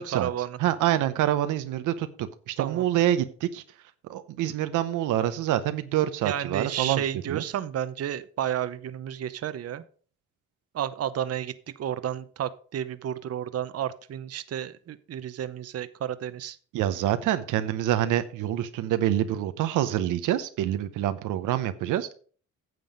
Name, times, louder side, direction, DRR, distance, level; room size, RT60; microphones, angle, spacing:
voice 1, 0.0-0.6 2.6-2.8 6.2-9.8 10.7-16.6, right 10 dB, 55° right, 0.8 m, -32 dB
voice 2, 0.6-2.1 2.5-3.6 4.1-7.0 7.3-7.4 16.7-22.1, right 12 dB, 85° right, 0.8 m, -26 dB
9.5 x 6.9 x 5.3 m
cardioid pair, 90°, 30 cm